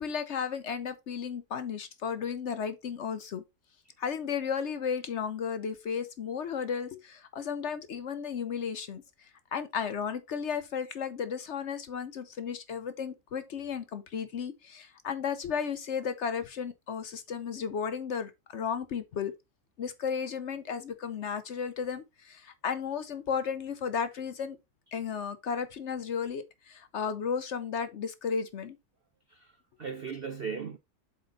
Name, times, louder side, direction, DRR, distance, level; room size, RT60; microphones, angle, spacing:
voice 1, 0.0-3.4 4.0-9.0 9.5-19.3 19.8-24.6 24.9-28.8, left 6 dB, 60° left, 0.8 m, -34 dB
voice 2, 29.3-30.8, right 6 dB, 60° right, 0.6 m, -38 dB
7.8 x 4.4 x 3.8 m
omnidirectional pair, 1.7 m